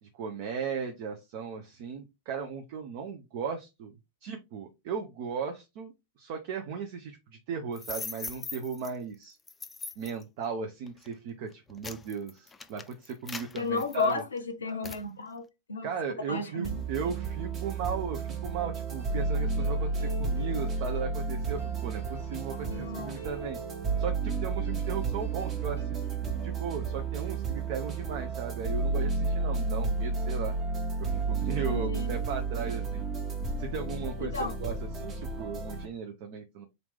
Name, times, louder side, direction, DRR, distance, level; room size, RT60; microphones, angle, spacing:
voice 1, 0.0-5.9 6.2-9.4 10.0-14.2 15.8-23.6 24.0-26.1 26.4-30.5 31.0-33.1 33.6-36.7, right 6 dB, 50° right, 0.6 m, -37 dB
sound 1, 7.7-8.9 9.5-10.2 10.9-11.1 11.5-14.4 14.8-15.1, left 4 dB, 15° left, 0.4 m, -40 dB
voice 2, 13.6-15.9 16.3-16.8 22.6-23.2 31.6-32.1 34.2-34.5, left 3 dB, 75° left, 0.6 m, -33 dB
sound 2, 16.6-35.9, right 4 dB, 25° right, 1.1 m, -32 dB
sound 3, 18.9-24.4 24.6-25.8, right 4 dB, 75° right, 2.2 m, -49 dB
3.9 x 3.0 x 3.4 m
figure-of-eight pair, 90°, 0 cm